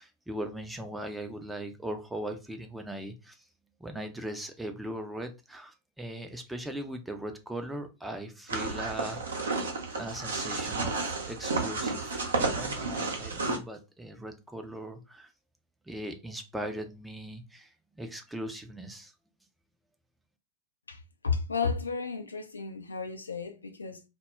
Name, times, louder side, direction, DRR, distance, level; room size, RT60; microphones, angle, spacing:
voice 1, 0.0-3.4 3.8-9.5 9.9-15.3 15.9-19.1, right 1 dB, 5° right, 0.4 m, -39 dB
sound 1, 8.5-13.6, right 3 dB, 70° right, 0.6 m, -31 dB
voice 2, 20.9-24.0, left 5 dB, 75° left, 0.4 m, -33 dB
2.1 x 2.0 x 3.4 m
figure-of-eight pair, 90°, 0 cm